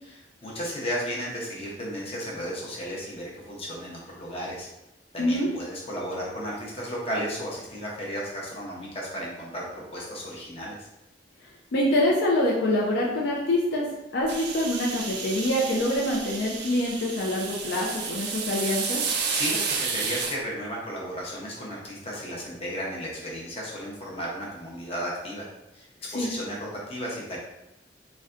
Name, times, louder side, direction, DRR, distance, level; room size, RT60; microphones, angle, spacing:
voice 1, 0.0-4.7 5.1-10.9 19.3-27.4, equal, 35° left, -4 dB, 0.8 m, -34 dB
voice 2, 5.2-5.5 11.7-13.9 14.1-19.0 26.1-26.3, left 1 dB, 65° left, -4 dB, 0.5 m, -25 dB
sound 1, 14.3-20.4, right 5 dB, 65° right, 0.4 m, -31 dB
3.9 x 2.2 x 2.4 m, 0.91 s
head